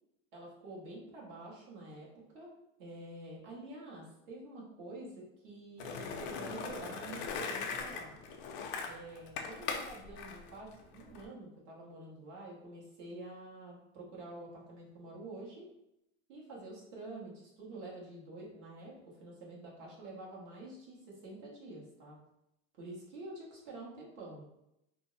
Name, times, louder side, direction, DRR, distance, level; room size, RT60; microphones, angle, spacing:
voice 1, 0.3-2.5 2.8-8.1 8.8-15.7 16.3-22.2 22.8-24.4, right 2 dB, 50° right, -4 dB, 1.1 m, -48 dB
Skateboard, 5.8-11.2, left 5 dB, 45° left, 0.4 m, -40 dB
2.5 x 2.0 x 3.8 m, 0.84 s
supercardioid pair, 165°, 37 cm